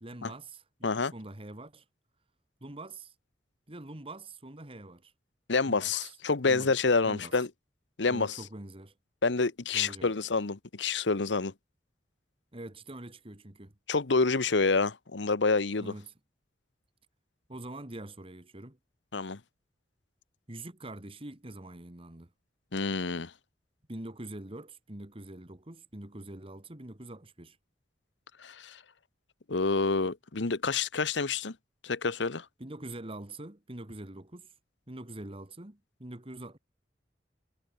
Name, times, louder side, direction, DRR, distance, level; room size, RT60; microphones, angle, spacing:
voice 1, 0.0-1.9 2.6-3.2 3.7-5.1 5.6-6.2 6.4-6.7 7.0-7.4 8.1-8.9 9.7-10.1 12.5-13.7 15.8-16.1 17.5-18.8 20.5-22.3 23.9-27.6 32.6-34.5 34.9-36.6, right 1 dB, 30° right, 2.0 m, -44 dB
voice 2, 5.5-7.5 8.0-8.4 9.2-11.5 13.9-15.9 19.1-19.4 22.7-23.3 28.4-28.8 29.5-31.5 31.8-32.4, left 4 dB, 85° left, 1.1 m, -28 dB
head